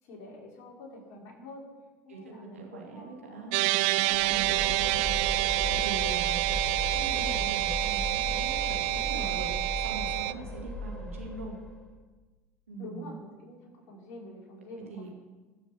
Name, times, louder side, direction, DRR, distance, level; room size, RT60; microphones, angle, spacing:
voice 1, 0.0-1.7 2.0-3.5 3.9-5.1 12.8-15.1, left 1 dB, 55° left, -4 dB, 4.7 m, -46 dB
voice 2, 2.5-3.6 4.2-4.6 5.6-6.4 6.9-9.5 9.8-11.5 12.7-13.1 14.9-15.1, right 4 dB, 85° right, -2 dB, 2.7 m, -42 dB
sound 1, 3.5-10.3, right 20 dB, 60° right, 0.4 m, -28 dB
sound 2, 4.1-11.9, left 1 dB, 15° left, 2.9 m, -37 dB
21.0 x 7.4 x 5.9 m, 1.3 s
figure-of-eight pair, 70°, 7 cm